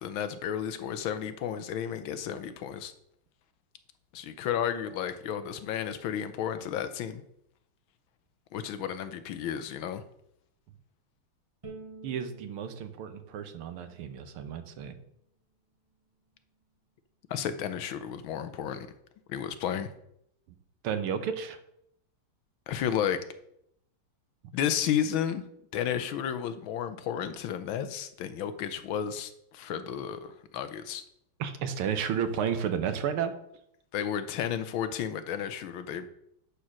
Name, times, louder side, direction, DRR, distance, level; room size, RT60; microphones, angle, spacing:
voice 1, 0.0-2.9 4.1-7.2 8.5-10.0 17.3-18.9 19.3-19.9 22.7-23.2 24.5-25.4 25.7-31.0 33.9-36.1, left 9 dB, 75° left, 11 dB, 1.4 m, -32 dB
Bowed string instrument, 11.6-14.9, right 3 dB, 15° right, 1.6 m, -50 dB
voice 2, 12.0-15.0 20.8-21.6 31.4-33.3, right 8 dB, 85° right, 9 dB, 1.9 m, -32 dB
10.0 x 4.5 x 6.2 m, 0.75 s
omnidirectional pair, 2.4 m